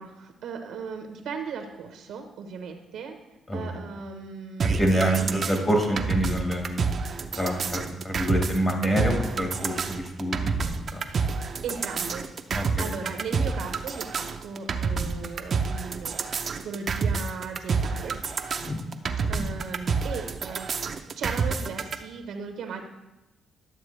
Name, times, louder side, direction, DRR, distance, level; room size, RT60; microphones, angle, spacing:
voice 1, 0.0-3.2 3.5-5.4 11.0-11.2 11.6-12.3 12.8-18.2 19.3-22.8, right 5 dB, 80° right, 4 dB, 1.0 m, -37 dB
voice 2, 3.5-3.8 4.6-6.9 7.3-11.1 12.5-12.9 18.6-18.8 19.2-19.4, right 1 dB, 30° left, 2 dB, 1.6 m, -27 dB
sound 1, 4.6-22.0, right 5 dB, 45° right, 0.6 m, -28 dB
11.5 x 7.1 x 3.2 m, 0.98 s
cardioid pair, 90°, 0 cm